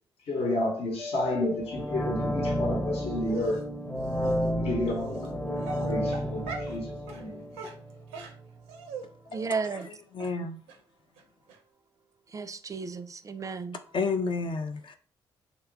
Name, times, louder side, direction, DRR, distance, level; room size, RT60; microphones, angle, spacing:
voice 1, 0.3-3.6 4.5-7.5, left 1 dB, 65° left, 0.9 m, -31 dB
Mallet percussion, 1.0-3.0, left 3 dB, 85° left, 1.2 m, -43 dB
sound 1, 1.6-8.5 8.8-8.9, equal, 20° left, 0.7 m, -32 dB
Dog, 3.3-3.6 4.2-4.3 5.1-5.3 5.6-6.8 7.1-7.2 7.5-9.0 9.3-9.5 9.7-9.9 10.2-10.3 10.7-10.8 11.2-11.3 11.5-11.6, right 4 dB, 90° right, 0.5 m, -41 dB
voice 2, 9.3-9.9 12.3-13.8, right 4 dB, 30° right, 0.4 m, -33 dB
voice 3, 9.9-10.6 13.9-15.0, left 4 dB, 50° left, 0.4 m, -30 dB
2.9 x 2.2 x 3.5 m
hypercardioid pair, 45°, 11 cm